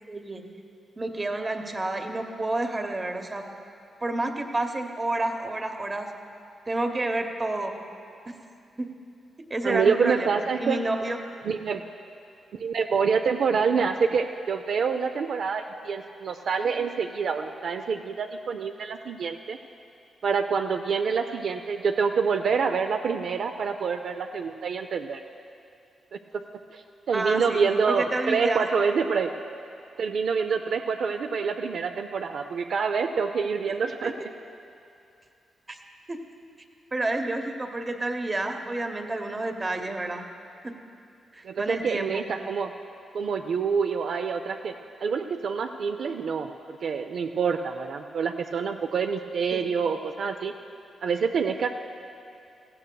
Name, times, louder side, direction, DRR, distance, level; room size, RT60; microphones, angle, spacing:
voice 1, 0.1-0.4 1.0-3.4 4.0-6.1 6.7-7.7 8.8-8.9 9.5-11.2 27.1-28.6 34.0-34.1 35.7-35.8 36.1-36.2 36.9-40.2 40.6-40.7 41.3-42.2 49.5-49.7, right 2 dB, 25° right, 5 dB, 0.9 m, -29 dB
voice 2, 9.6-10.8 11.4-11.8 12.5-19.6 20.2-25.2 26.3-26.4 26.7-29.3 30.0-34.3 41.4-42.7 43.1-44.7 45.0-50.5 51.0-51.7, right 5 dB, 65° right, 6 dB, 0.4 m, -27 dB
17.5 x 15.0 x 2.3 m, 2.6 s
cardioid pair, 120°, 0 cm